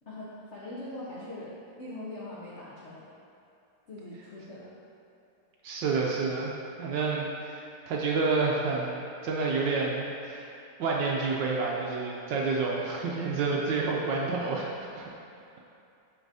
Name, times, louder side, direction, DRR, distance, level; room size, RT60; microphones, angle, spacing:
voice 1, 0.0-3.1 3.9-4.7, left 1 dB, 90° left, -7 dB, 0.6 m, -42 dB
voice 2, 5.6-6.5 6.8-10.5 10.8-14.7 15.0-15.1, right 4 dB, 75° right, -2 dB, 1.1 m, -29 dB
8.0 x 5.3 x 2.7 m, 2.6 s
omnidirectional pair, 2.4 m